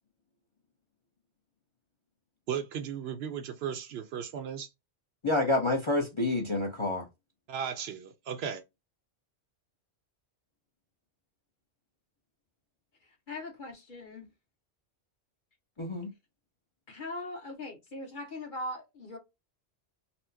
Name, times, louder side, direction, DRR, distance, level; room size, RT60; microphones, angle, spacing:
voice 1, 2.5-4.7 7.5-8.6, right 8 dB, 70° right, 0.8 m, -36 dB
voice 2, 5.2-7.0 15.8-16.1, left 2 dB, 30° left, 0.6 m, -28 dB
voice 3, 13.0-14.3 16.9-19.2, left 1 dB, 45° left, 1.4 m, -40 dB
4.2 x 2.0 x 2.7 m
omnidirectional pair, 1.1 m